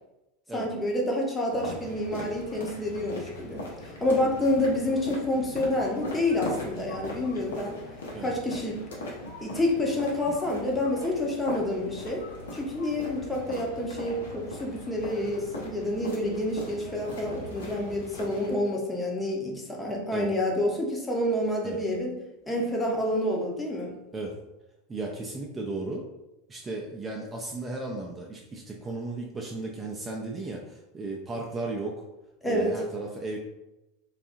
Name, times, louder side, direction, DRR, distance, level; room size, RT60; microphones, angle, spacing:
voice 1, 0.5-7.8 8.2-8.9 9.4-22.2 22.5-24.0 32.4-32.8, left 1 dB, 10° left, -1 dB, 0.7 m, -28 dB
sound 1, 1.5-18.5, left 1 dB, 75° left, 0.7 m, -39 dB
voice 2, 24.9-26.0 26.5-32.0 32.4-33.4, right 2 dB, 20° right, -1 dB, 0.4 m, -35 dB
2.7 x 2.3 x 2.5 m, 0.95 s
figure-of-eight pair, 80°, 0 cm